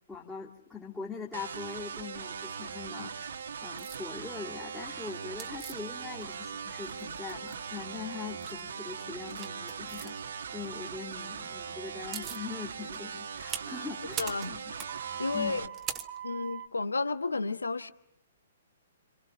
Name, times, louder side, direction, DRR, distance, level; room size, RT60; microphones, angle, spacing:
voice 1, 0.1-14.6 15.3-15.7, left 5 dB, 10° left, 2.5 m, -42 dB
sound 1, 1.3-15.7, right 6 dB, 55° right, 1.5 m, -40 dB
sound 2, 3.8-4.0 5.4-6.5 6.8-7.7 8.3-8.6 9.3-10.1 11.6-11.7 11.9-12.5 12.9-16.7, right 10 dB, 20° right, 1.4 m, -41 dB
voice 2, 14.2-14.6 15.2-15.7 16.2-17.9, left 3 dB, 70° left, 1.2 m, -32 dB
28.0 x 27.5 x 5.8 m
figure-of-eight pair, 120°, 0 cm